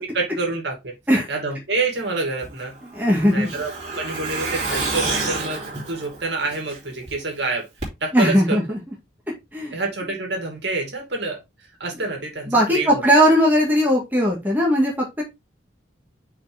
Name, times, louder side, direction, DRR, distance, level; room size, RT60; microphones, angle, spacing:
voice 1, 0.0-0.9 1.3-2.7 3.3-3.7 4.0-7.6 8.0-8.6 9.7-11.4 11.8-13.0, right 3 dB, 55° right, 1 dB, 2.6 m, -27 dB
Truck, 2.4-7.1 7.4-7.5 7.8-7.9, right 3 dB, 35° right, 3.1 m, -29 dB
voice 2, 2.8-3.5 8.1-8.8 9.5-9.8 10.0-10.1 12.5-15.2, equal, 10° right, -3 dB, 1.8 m, -18 dB
6.2 x 4.9 x 3.4 m, 0.22 s
head